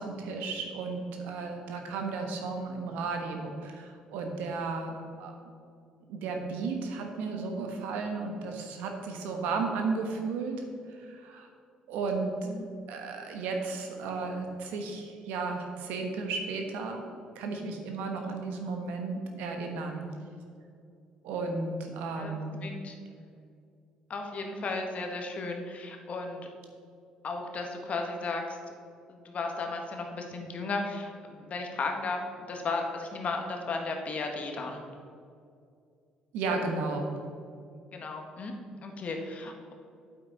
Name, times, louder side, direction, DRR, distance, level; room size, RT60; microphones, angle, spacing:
voice 1, 0.0-5.4 6.1-11.5 11.9-12.3 12.9-17.0 17.3-20.0 21.2-22.6 36.3-37.1, right 4 dB, 80° right, 3 dB, 1.3 m, -34 dB
voice 2, 22.6-23.0 24.1-26.5 27.2-28.6 29.1-34.8 37.9-38.5 38.8-39.7, left 3 dB, 50° left, 3 dB, 1.5 m, -35 dB
8.5 x 8.1 x 4.0 m, 2.4 s
supercardioid pair, 65°, 3 cm